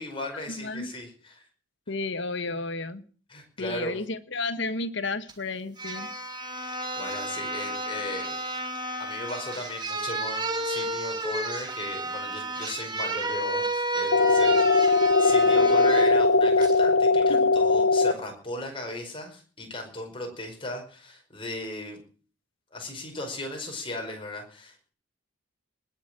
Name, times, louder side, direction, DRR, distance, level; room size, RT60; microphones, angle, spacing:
voice 1, 0.0-1.5 3.3-4.0 6.6-8.4 9.0-22.0 22.7-24.9, left 1 dB, 25° left, 5.1 m, -37 dB
voice 2, 0.6-0.9 1.9-3.0 3.6-6.1 17.3-17.5, left 3 dB, 60° left, 1.4 m, -32 dB
sound 1, 5.3-5.4 5.8-16.1 16.6-16.8, right 1 dB, 20° right, 2.6 m, -32 dB
sound 2, 14.1-18.1, left 3 dB, 75° left, 1.1 m, -20 dB
20.0 x 7.3 x 9.0 m
head